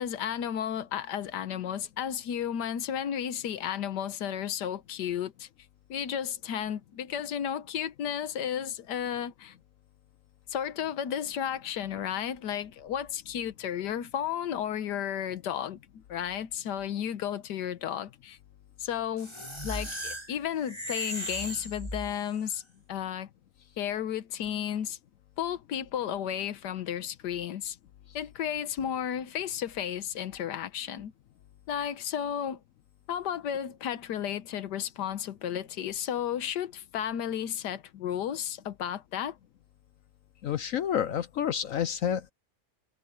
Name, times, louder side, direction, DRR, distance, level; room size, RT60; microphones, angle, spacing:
voice 1, 0.0-5.5 5.9-9.5 10.5-18.4 18.8-19.3 19.6-22.6 22.9-23.3 23.8-25.0 25.4-27.8 28.1-31.1 31.7-32.6 33.1-39.4, left 9 dB, 80° left, 1.6 m, -33 dB
sound 1, 19.2-22.4, equal, 15° left, 6.0 m, -37 dB
voice 2, 40.4-42.3, left 9 dB, 65° left, 0.9 m, -29 dB
omnidirectional pair, 1.8 m